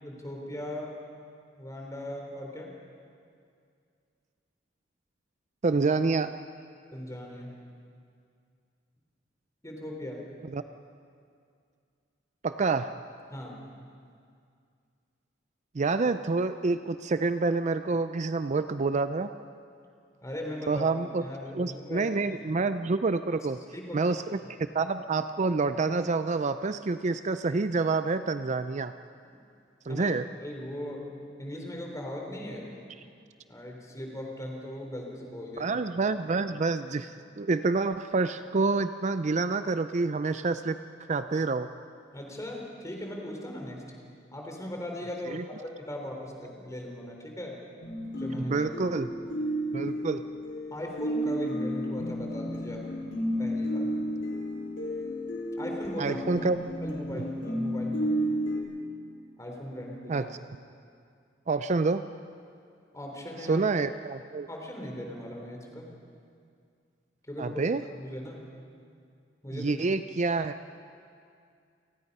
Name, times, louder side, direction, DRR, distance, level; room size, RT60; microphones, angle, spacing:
voice 1, 0.0-1.0 1.6-2.7 6.9-7.6 9.6-10.2 13.3-13.6 20.2-20.9 21.2-22.4 23.7-24.5 29.9-30.1 30.4-31.1 31.4-32.7 33.5-35.7 42.1-43.8 44.3-47.6 48.2-48.7 50.7-52.8 53.4-53.9 55.6-56.2 56.8-58.1 59.4-60.3 62.9-63.6 64.5-65.9 67.3-67.6 67.9-68.4 69.4-69.7, left 1 dB, 15° left, 0 dB, 3.8 m, -39 dB
voice 2, 5.6-6.3 10.5-10.6 12.4-12.9 15.7-19.3 20.7-21.2 21.5-23.6 23.9-24.4 24.7-28.9 29.9-30.3 35.6-40.8 41.1-41.7 45.3-45.4 48.3-49.1 49.7-50.2 56.0-56.6 57.1-57.2 60.1-60.3 61.5-62.0 63.5-64.5 67.4-67.8 69.5-70.5, right 3 dB, 40° right, 10 dB, 0.5 m, -27 dB
sound 1, 47.8-58.6, equal, 70° left, 4.7 m, -32 dB
30.0 x 19.0 x 5.5 m, 2.3 s
head